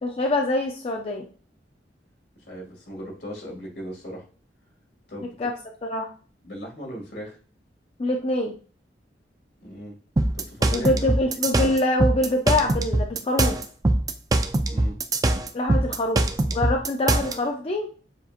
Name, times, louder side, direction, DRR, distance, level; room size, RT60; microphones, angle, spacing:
voice 1, 0.0-1.3 5.4-5.5 5.8-6.1 8.0-8.6 10.7-13.6 15.5-16.2 16.5-17.9, left 1 dB, 35° left, 2 dB, 0.5 m, -24 dB
voice 2, 2.5-4.3 5.1-5.4 6.4-7.4 9.6-10.0 10.4-11.0 14.7-15.0, equal, 75° left, -2 dB, 2.3 m, -37 dB
sound 1, 10.2-17.3, right 2 dB, 20° right, 0.4 m, -22 dB
7.1 x 2.8 x 2.5 m, 0.38 s
head